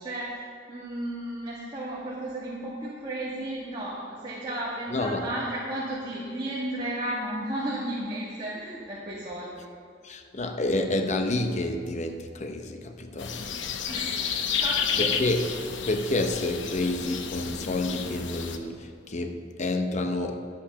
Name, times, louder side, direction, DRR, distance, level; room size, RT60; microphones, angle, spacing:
voice 1, 0.0-9.7 13.9-14.3 14.6-15.1, right 1 dB, 25° right, -8 dB, 1.8 m, -33 dB
voice 2, 4.9-5.2 10.0-13.4 15.0-15.5 15.9-20.3, left 2 dB, 40° left, 5 dB, 0.7 m, -29 dB
sound 1, 13.2-18.6, left 7 dB, 70° left, 0.8 m, -31 dB
11.0 x 8.6 x 5.7 m, 2.3 s
head